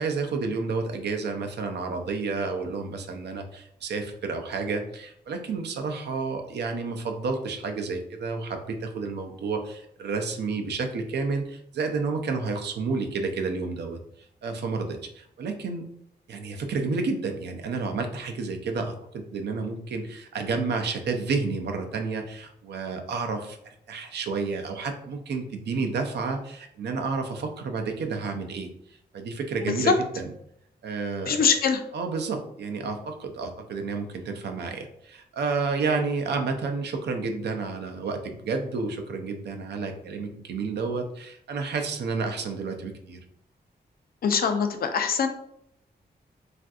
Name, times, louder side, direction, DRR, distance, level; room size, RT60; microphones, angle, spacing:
voice 1, 0.0-14.0 14.4-15.9 16.3-23.6 23.9-28.7 29.1-30.3 30.8-31.4 31.9-43.2, right 4 dB, 80° right, 4 dB, 0.5 m, -30 dB
voice 2, 29.6-29.9 31.3-31.8 44.2-45.3, left 6 dB, 60° left, 7 dB, 0.4 m, -23 dB
3.4 x 2.5 x 2.3 m, 0.72 s
wide cardioid pair, 170°, 17 cm